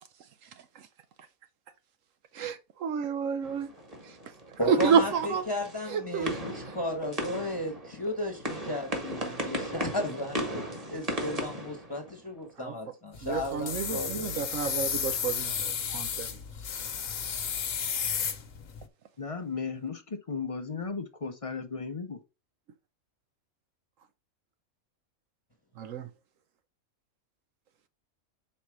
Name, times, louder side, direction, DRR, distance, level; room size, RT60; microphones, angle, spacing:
voice 1, 2.3-3.7 4.0-4.2 4.7-5.4 5.9-6.3 12.6-12.7 13.2-16.4 25.8-26.1, right 6 dB, 70° right, 1.0 m, -29 dB
sound 1, 3.4-12.5, equal, 25° right, 1.7 m, -37 dB
voice 2, 4.6-10.6 10.9-14.5, left 1 dB, 20° left, 1.0 m, -34 dB
sound 2, 13.1-18.9, left 7 dB, 65° left, 1.3 m, -33 dB
voice 3, 19.2-22.2, left 5 dB, 40° left, 0.5 m, -35 dB
5.6 x 4.2 x 4.7 m
omnidirectional pair, 1.5 m